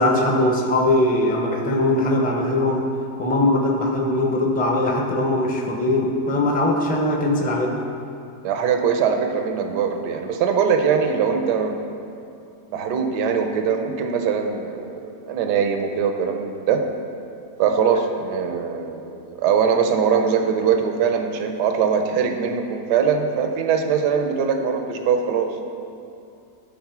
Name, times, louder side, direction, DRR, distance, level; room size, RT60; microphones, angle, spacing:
voice 1, 0.0-2.9 3.2-7.8, left 1 dB, 10° left, 0 dB, 0.5 m, -20 dB
voice 2, 8.4-11.8 12.7-16.8 17.6-25.6, right 6 dB, 85° right, 5 dB, 1.3 m, -22 dB
12.5 x 4.2 x 5.9 m, 2.5 s
omnidirectional pair, 1.8 m